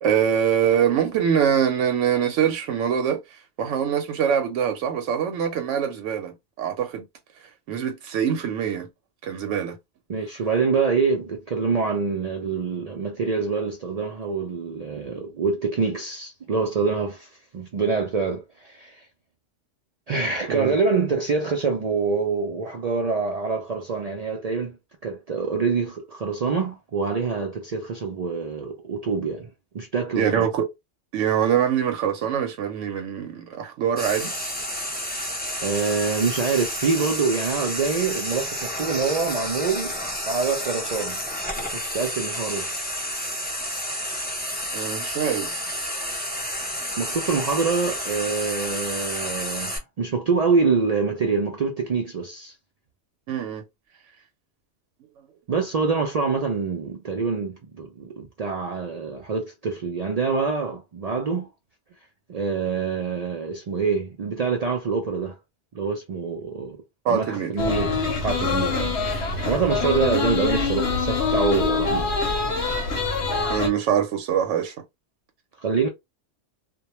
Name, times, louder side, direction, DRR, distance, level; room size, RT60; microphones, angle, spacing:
voice 1, 0.0-7.1 7.7-8.9 9.2-9.8 20.5-20.8 30.1-30.7 31.1-34.3 44.7-45.5 53.3-53.6 67.0-67.5 73.5-74.7, right 8 dB, 85° right, 0.9 m, -24 dB
voice 2, 10.1-19.0 20.1-24.8 25.0-30.5 35.6-40.0 40.3-41.2 41.6-42.7 47.0-52.5 55.5-61.5 62.3-65.4 65.7-66.8 67.1-72.1 75.6-75.9, right 4 dB, 70° right, 0.3 m, -25 dB
Frying (food), 34.0-49.8, equal, 10° left, 0.5 m, -30 dB
sound 1, 67.6-73.7, left 4 dB, 70° left, 0.9 m, -25 dB
2.2 x 2.2 x 2.9 m
omnidirectional pair, 1.2 m